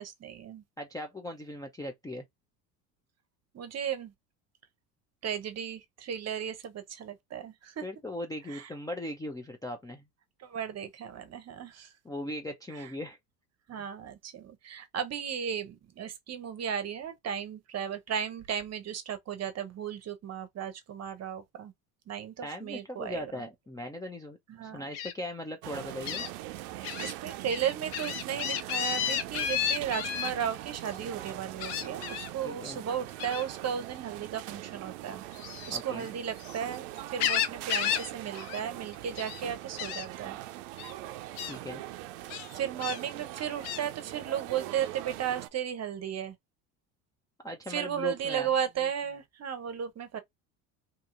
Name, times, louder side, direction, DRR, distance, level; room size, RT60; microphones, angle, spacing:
voice 1, 0.0-0.6 3.5-4.1 5.2-7.8 8.5-8.7 10.4-11.9 12.7-12.9 13.7-21.7 22.1-23.5 24.5-24.9 27.0-35.2 35.7-40.4 42.5-46.3 47.7-50.2, right 8 dB, 35° right, 0.8 m, -35 dB
voice 2, 0.8-2.2 7.8-10.0 12.0-13.2 22.4-26.2 32.4-32.8 35.7-36.1 41.5-41.8 47.4-48.5, left 1 dB, 10° left, 0.4 m, -39 dB
Gull seagull, 24.9-25.1 26.0-26.3 26.8-27.1 27.5-30.3 31.6-32.3 33.2-33.5 35.3-36.6 37.0-38.1 38.3-38.6 38.9-39.4 39.8-40.0 40.8-40.9 41.4-41.5 42.3-43.0 43.6-43.8, left 10 dB, 75° left, 0.7 m, -32 dB
sound 1, 25.6-45.5, right 15 dB, 70° right, 0.6 m, -42 dB
2.8 x 2.7 x 2.4 m
hypercardioid pair, 80°, 46 cm